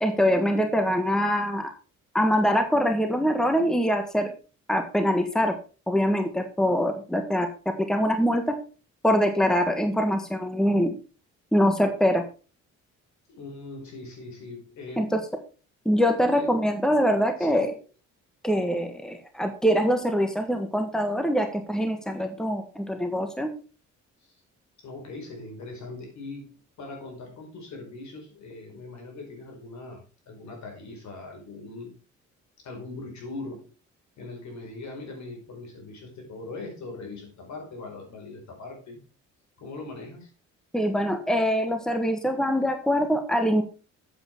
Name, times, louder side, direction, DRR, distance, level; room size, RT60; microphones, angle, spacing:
voice 1, 0.0-1.7 2.1-4.3 4.7-5.5 5.9-7.5 7.9-8.4 9.0-10.9 11.5-12.2 15.0-15.2 15.8-17.7 18.4-23.5 40.7-43.6, equal, ahead, 6 dB, 1.4 m, -23 dB
voice 2, 13.3-15.1 16.3-16.5 17.4-17.8 24.2-24.4 24.8-31.9 32.6-33.7 34.2-39.0 39.6-40.3, left 3 dB, 65° left, 2 dB, 4.8 m, -41 dB
8.5 x 7.8 x 4.5 m, 0.35 s
cardioid pair, 90°, 30 cm